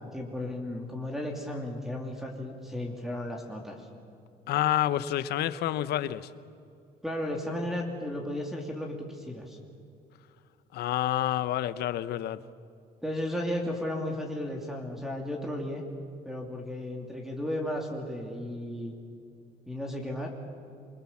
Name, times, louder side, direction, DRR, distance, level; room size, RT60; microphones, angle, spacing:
voice 1, 0.0-3.8 7.0-9.6 13.0-15.8 16.2-18.9 19.7-20.3, left 1 dB, ahead, 2.9 m, -34 dB
voice 2, 4.5-6.3 10.7-12.4, left 12 dB, 75° left, 0.9 m, -28 dB
27.0 x 21.5 x 7.3 m
cardioid pair, 110°, 17 cm